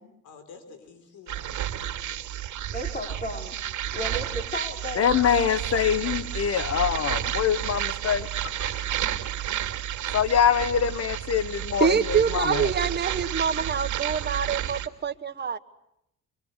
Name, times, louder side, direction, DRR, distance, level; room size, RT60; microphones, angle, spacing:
voice 1, 0.2-2.3, left 5 dB, 75° left, 7 dB, 4.8 m, -49 dB
sound 1, 1.3-14.9, right 12 dB, 70° right, 2.6 m, -31 dB
voice 2, 2.7-3.6 3.9-5.1, equal, 30° left, 3 dB, 4.9 m, -34 dB
voice 3, 5.0-8.9 10.1-12.7, left 8 dB, 55° left, 14 dB, 1.1 m, -25 dB
voice 4, 11.8-15.6, right 7 dB, 35° right, 7 dB, 1.5 m, -25 dB
28.5 x 24.0 x 8.2 m, 0.80 s
cardioid pair, 90°, 30 cm